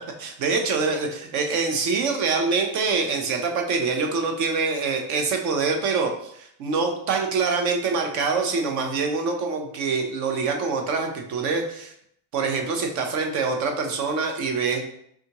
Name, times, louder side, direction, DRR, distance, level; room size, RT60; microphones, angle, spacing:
voice 1, 0.2-11.9 12.3-14.8, right 4 dB, 35° right, 4 dB, 0.7 m, -25 dB
4.2 x 3.6 x 2.9 m, 0.70 s
supercardioid pair, 155°, 48 cm